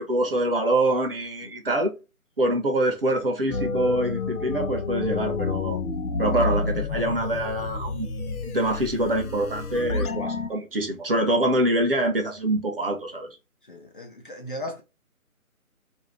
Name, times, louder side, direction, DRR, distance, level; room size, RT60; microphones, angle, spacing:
voice 1, 0.0-1.9 2.4-5.8 6.2-13.3, right 1 dB, 40° right, 0.6 m, -25 dB
sound 1, 3.5-10.5, left 4 dB, 80° left, 0.7 m, -29 dB
voice 2, 13.6-14.8, left 1 dB, 40° left, 0.6 m, -37 dB
2.5 x 2.0 x 3.0 m
figure-of-eight pair, 155°, 43 cm